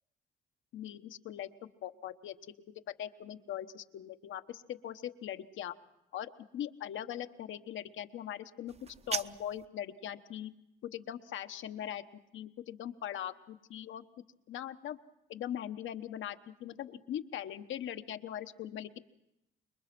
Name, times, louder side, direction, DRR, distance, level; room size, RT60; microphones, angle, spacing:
voice 1, 0.7-2.4 3.0-5.7 6.1-8.7 9.1-10.5 10.8-14.0 14.5-15.0 15.3-19.0, left 10 dB, 75° left, 9 dB, 1.1 m, -41 dB
sound 1, 8.7-9.7, right 6 dB, 30° right, 0.7 m, -38 dB
26.0 x 22.0 x 6.0 m, 0.86 s
cardioid pair, 90°, 20 cm